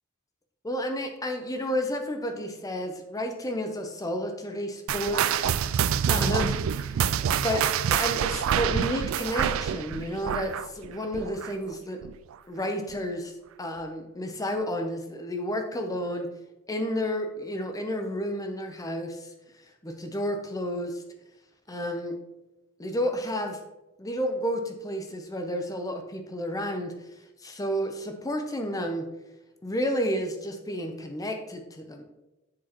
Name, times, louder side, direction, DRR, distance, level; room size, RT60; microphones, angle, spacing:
voice 1, 0.6-6.6 7.4-12.0 12.5-16.3 16.7-19.3 19.8-21.0 21.7-22.2 22.8-23.6 24.0-26.9 27.4-29.0 29.6-32.0, equal, 15° left, 5 dB, 0.7 m, -31 dB
sound 1, 4.9-11.7 12.0-12.3 12.9-13.0 13.8-13.9, right 8 dB, 70° right, 0.3 m, -27 dB
7.5 x 6.1 x 3.0 m, 0.98 s
head